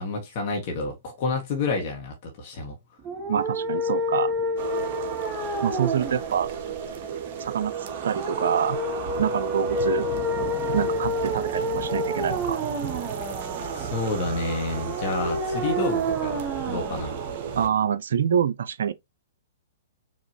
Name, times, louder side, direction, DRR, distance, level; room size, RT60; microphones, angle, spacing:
voice 1, 0.0-2.8 13.7-17.2, left 3 dB, 45° left, 1.5 m, -29 dB
sound 1, 3.0-18.0, equal, 20° right, 1.1 m, -30 dB
voice 2, 3.3-4.3 5.6-6.5 7.4-7.7 8.0-8.8 9.2-10.1 10.7-12.6 17.6-18.9, right 8 dB, 65° right, 0.4 m, -26 dB
sound 2, 4.6-17.7, right 7 dB, 45° right, 0.9 m, -34 dB
4.8 x 2.9 x 3.1 m
figure-of-eight pair, 120°, 0 cm